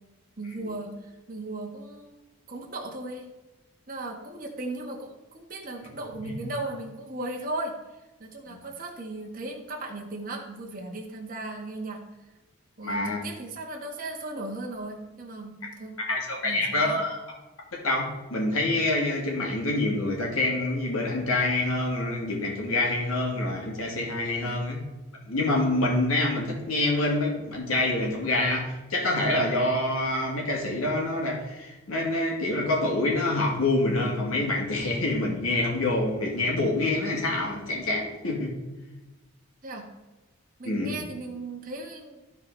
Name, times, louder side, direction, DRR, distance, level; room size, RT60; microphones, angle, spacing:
voice 1, 0.4-3.3 3.9-7.8 8.2-12.0 12.8-16.0 16.4-17.0 24.4-24.6 39.6-39.9 40.6-42.2, right 2 dB, 40° right, 0 dB, 1.6 m, -37 dB
voice 2, 12.8-13.2 16.1-17.2 17.7-24.8 25.3-38.5 40.6-41.0, left 2 dB, 85° left, -1 dB, 2.6 m, -26 dB
14.5 x 4.8 x 4.0 m, 1.1 s
head